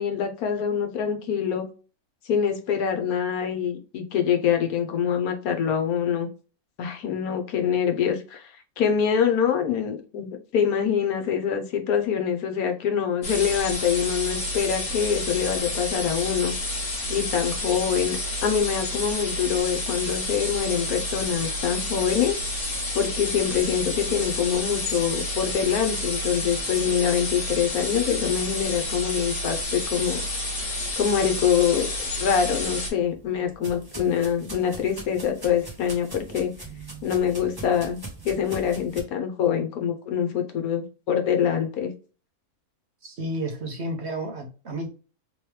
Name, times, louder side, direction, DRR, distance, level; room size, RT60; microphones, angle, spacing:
voice 1, 0.0-1.7 2.2-6.3 6.8-8.5 8.8-16.5 17.1-22.4 22.9-30.2 31.0-31.9 32.2-36.5 37.0-38.0 38.2-41.9, left 8 dB, 75° left, 1.2 m, -25 dB
sound 1, 13.2-32.9, left 1 dB, 50° left, 1.5 m, -30 dB
sound 2, 32.7-39.0, right 2 dB, 15° right, 1.1 m, -41 dB
voice 2, 43.0-44.9, right 1 dB, 50° right, 1.0 m, -31 dB
3.4 x 3.0 x 3.2 m
omnidirectional pair, 1.6 m